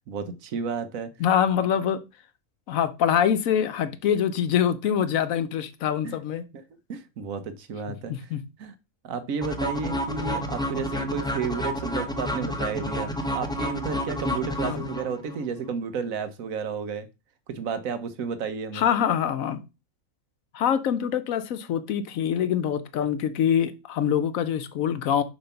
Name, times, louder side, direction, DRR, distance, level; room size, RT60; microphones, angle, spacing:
voice 1, 0.1-1.1 6.0-6.2 6.9-8.3 8.6-8.7 9.0-17.1 17.5-18.8, right 5 dB, 70° right, 11 dB, 1.3 m, -32 dB
voice 2, 1.2-2.0 2.7-6.4 8.1-8.4 14.6-14.9 18.7-19.6 20.5-25.2, left 9 dB, 75° left, 12 dB, 1.1 m, -24 dB
sound 1, 9.4-15.4, left 1 dB, 5° left, 0.5 m, -30 dB
6.9 x 3.3 x 5.7 m, 0.27 s
omnidirectional pair, 1.5 m